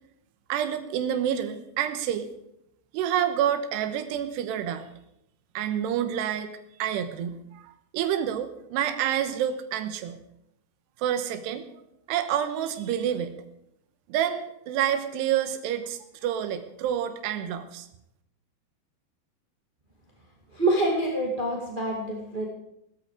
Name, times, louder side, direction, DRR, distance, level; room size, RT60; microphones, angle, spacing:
voice 1, 0.5-2.3 2.9-4.9 5.5-6.5 6.8-10.2 11.0-11.7 12.1-13.3 14.1-17.9, right 10 dB, 90° right, 9 dB, 3.1 m, -28 dB
voice 2, 20.5-22.5, right 1 dB, 20° right, -1 dB, 1.4 m, -26 dB
18.0 x 13.0 x 4.9 m, 0.79 s
omnidirectional pair, 4.8 m